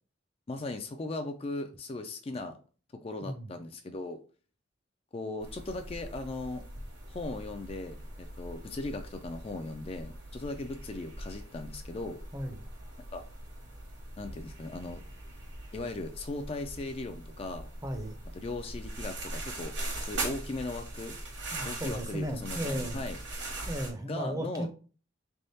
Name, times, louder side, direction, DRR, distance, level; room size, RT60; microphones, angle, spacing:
voice 1, 0.5-2.6 3.0-4.2 5.1-6.6 7.1-12.2 13.1-13.2 14.2-15.0 15.7-17.7 18.3-19.7 20.0-21.1 21.6-23.2 24.1-24.7, left 2 dB, 30° left, 7 dB, 0.3 m, -38 dB
sound 1, 5.4-23.9, right 1 dB, 65° right, 1.4 m, -41 dB
voice 2, 12.3-12.6 17.8-18.1 21.5-23.0 23.7-24.7, equal, 15° right, 5 dB, 0.6 m, -35 dB
3.8 x 3.4 x 2.7 m, 0.37 s
head